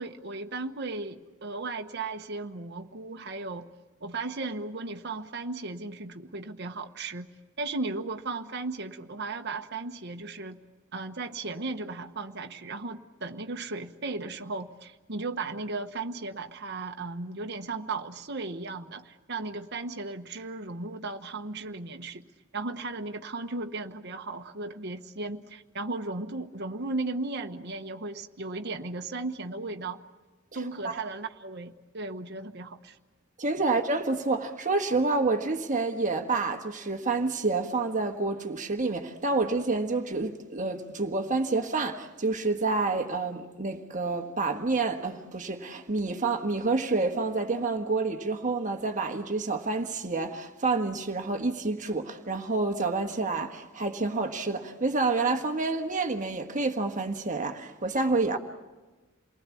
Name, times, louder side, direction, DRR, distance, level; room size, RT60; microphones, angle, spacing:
voice 1, 0.0-3.7 4.0-7.3 7.6-10.6 10.9-22.2 22.5-30.0 30.5-33.0, right 3 dB, 50° right, 1.1 m, -36 dB
voice 2, 33.4-58.4, right 3 dB, 35° right, 1.5 m, -28 dB
28.5 x 20.0 x 8.4 m
head